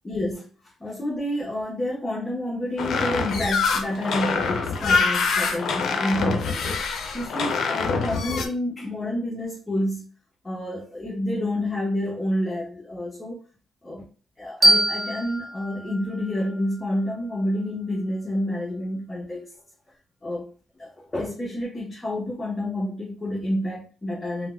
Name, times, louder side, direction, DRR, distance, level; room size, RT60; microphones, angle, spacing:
voice 1, 0.0-0.5 0.8-10.1 10.4-13.4 13.8-14.0 14.4-19.5 20.2-20.4 20.8-24.5, left 1 dB, 20° left, -4 dB, 0.8 m, -29 dB
sound 1, 2.8-8.5, left 4 dB, 65° left, 0.5 m, -25 dB
sound 2, 14.6-17.4, right 1 dB, 30° right, 0.6 m, -24 dB
3.8 x 2.1 x 2.3 m, 0.39 s
cardioid pair, 90°, 0 cm